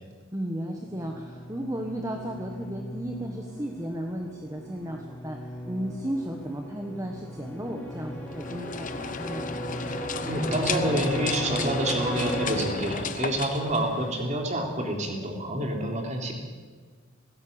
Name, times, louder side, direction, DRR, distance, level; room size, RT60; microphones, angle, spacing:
voice 1, 0.3-9.4, right 1 dB, 15° right, 2 dB, 1.3 m, -34 dB
sound 1, 0.8-13.4, equal, 10° left, 4.8 m, -36 dB
sound 2, 8.3-14.5, left 5 dB, 35° left, 0.9 m, -34 dB
voice 2, 10.2-16.3, right 1 dB, 35° right, 1 dB, 3.6 m, -28 dB
18.0 x 16.0 x 8.8 m, 1.5 s
head